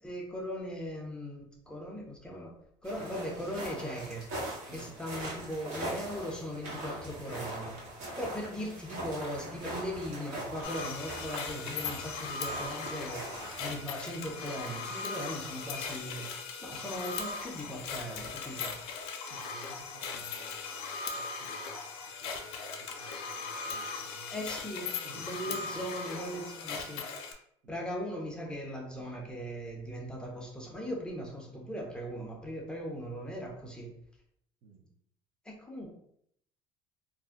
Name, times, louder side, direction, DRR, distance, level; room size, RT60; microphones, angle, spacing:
voice 1, 0.0-7.8 8.2-16.3 16.6-18.7 24.3-27.1 27.7-33.9 35.4-35.9, equal, 10° left, -1 dB, 0.5 m, -39 dB
sound 1, 2.8-13.8, right 1 dB, 85° right, 1.3 m, -41 dB
voice 2, 4.7-5.0 13.7-13.9 19.3-21.8 22.2-24.6 25.0-25.9 26.7-26.8 27.6-27.8 34.6-34.9, right 2 dB, 55° right, 2 dB, 0.6 m, -53 dB
sound 2, 10.6-27.3, left 4 dB, 60° left, 0.5 m, -39 dB
2.5 x 2.1 x 3.5 m, 0.69 s
cardioid pair, 140°, 11 cm